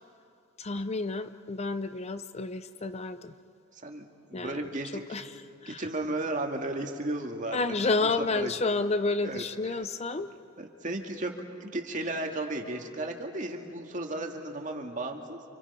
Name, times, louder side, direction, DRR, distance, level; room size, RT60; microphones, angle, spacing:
voice 1, 0.6-3.3 4.3-5.8 7.5-10.3, left 3 dB, 30° left, 11 dB, 0.6 m, -30 dB
voice 2, 3.7-4.0 4.3-5.0 5.7-8.5 8.8-8.9 9.2-9.4 10.6-11.3 11.6-15.5, right 2 dB, 40° right, 2 dB, 2.1 m, -34 dB
29.0 x 28.0 x 5.6 m, 2.6 s
head